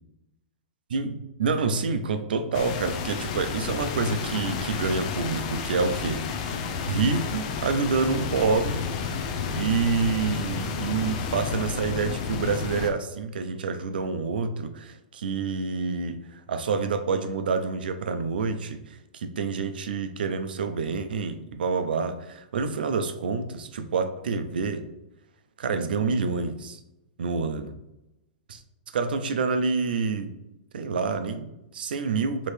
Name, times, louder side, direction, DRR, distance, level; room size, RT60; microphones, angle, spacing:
voice 1, 0.9-6.5 6.9-8.8 9.6-24.8 25.6-26.8 27.2-27.7 28.5-28.6 28.9-30.3 30.7-32.5, right 4 dB, 85° right, 9 dB, 0.5 m, -27 dB
sound 1, 2.5-12.9, left 6 dB, 45° left, 0.5 m, -31 dB
4.4 x 3.0 x 3.3 m, 0.92 s
hypercardioid pair, 160°, 5 cm